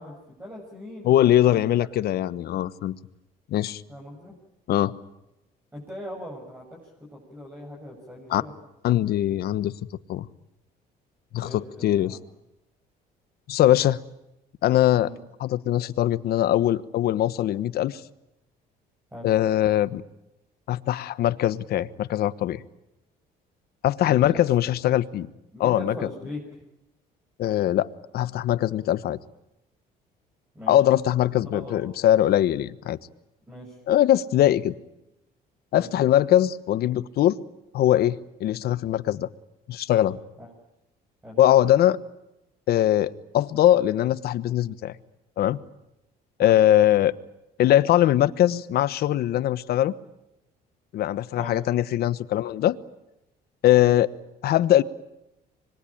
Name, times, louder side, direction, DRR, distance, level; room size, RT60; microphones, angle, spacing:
voice 1, 0.0-1.6 1.9-2.1 3.9-4.3 5.7-8.5 11.4-11.7 12.0-12.2 15.0-15.2 19.1-19.3 24.0-24.5 25.5-26.4 30.5-30.8 31.5-31.9 33.5-33.8 35.7-35.9 40.4-40.5 41.2-41.4 46.4-46.6 51.3-51.5, left 1 dB, 10° right, -3 dB, 7.6 m, -40 dB
voice 2, 1.0-3.0 3.5-3.8 4.7-4.9 8.3-8.4 8.8-9.7 10.1-10.3 11.3-12.2 13.5-14.0 14.6-15.1 15.4-18.0 19.2-20.0 20.7-22.6 23.8-25.3 25.6-25.9 27.4-27.9 28.1-29.2 30.7-33.0 33.9-34.7 35.7-37.4 37.7-39.3 39.7-40.2 41.4-42.0 42.7-44.9 45.4-45.6 46.4-47.1 47.6-49.9 50.9-52.8 53.6-54.1 54.4-54.8, left 12 dB, 65° left, 15 dB, 1.2 m, -21 dB
25.5 x 22.0 x 8.8 m, 0.90 s
cardioid pair, 110°, 17 cm